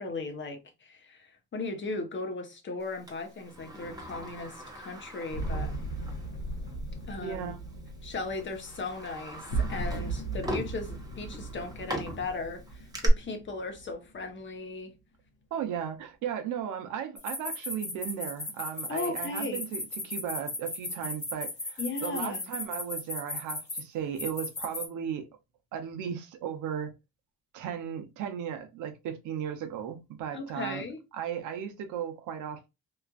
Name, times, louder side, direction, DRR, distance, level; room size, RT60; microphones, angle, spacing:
voice 1, 0.0-5.7 7.1-7.6 8.0-15.0 18.9-19.6 21.8-22.5 30.3-31.0, left 3 dB, 40° left, 0.8 m, -37 dB
Sliding door, 3.1-6.3 6.7-6.8 7.7-7.9 8.4-13.1, right 1 dB, 10° right, 0.9 m, -40 dB
sound 1, 5.3-14.2, right 3 dB, 80° left, 0.9 m, -37 dB
voice 2, 7.2-7.6 15.5-25.2 25.7-26.9 27.5-30.9 31.1-32.7, right 8 dB, 90° right, 0.7 m, -36 dB
sound 2, 17.2-23.8 24.2-24.9, left 2 dB, 25° left, 1.1 m, -35 dB
3.0 x 2.4 x 2.3 m
cardioid pair, 90°, 30 cm